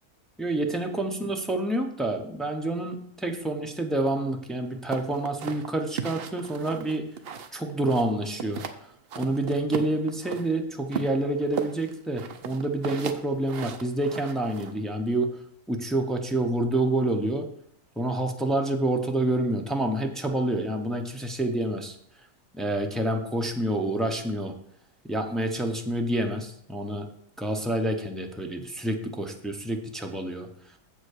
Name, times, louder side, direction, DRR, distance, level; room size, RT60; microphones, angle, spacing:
voice 1, 0.4-7.1 7.5-8.6 9.2-15.4 15.7-17.5 18.0-21.9 22.5-24.5 25.0-27.1 27.4-30.5, right 1 dB, ahead, 3 dB, 0.4 m, -28 dB
sound 1, 4.9-7.6 7.9-8.8 9.1-10.5 10.9-14.7, right 7 dB, 55° right, 0.7 m, -36 dB
7.6 x 5.1 x 6.4 m, 0.68 s
omnidirectional pair, 1.5 m